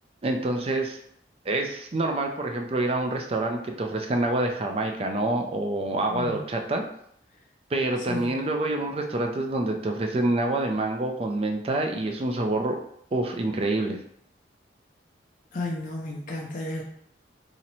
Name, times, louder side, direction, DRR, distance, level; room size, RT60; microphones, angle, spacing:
voice 1, 0.2-1.0 1.5-6.8 7.7-12.8 13.1-14.0, right 2 dB, 35° right, 3 dB, 0.4 m, -27 dB
voice 2, 6.1-6.4 8.1-8.3 15.5-16.8, left 2 dB, 45° left, 0 dB, 0.4 m, -33 dB
2.8 x 2.1 x 3.9 m, 0.69 s
head